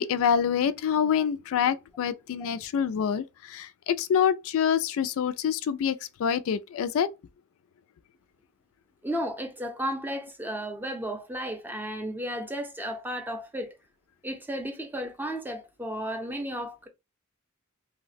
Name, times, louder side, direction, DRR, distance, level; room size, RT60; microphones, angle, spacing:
voice 1, 0.0-7.1, left 8 dB, 65° left, 0.3 m, -26 dB
voice 2, 9.0-13.7 14.2-16.9, equal, 10° right, 0.5 m, -33 dB
2.7 x 2.0 x 4.0 m
head